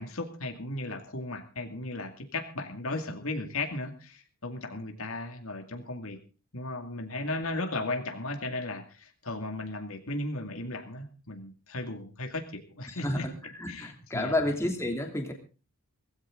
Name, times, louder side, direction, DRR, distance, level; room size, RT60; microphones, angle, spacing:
voice 1, 0.0-6.2 6.5-13.3 13.7-14.5, left 2 dB, 70° left, 5 dB, 2.3 m, -36 dB
voice 2, 12.9-13.3 13.6-15.3, left 1 dB, 10° left, 2 dB, 3.0 m, -30 dB
17.5 x 16.0 x 3.8 m, 0.35 s
head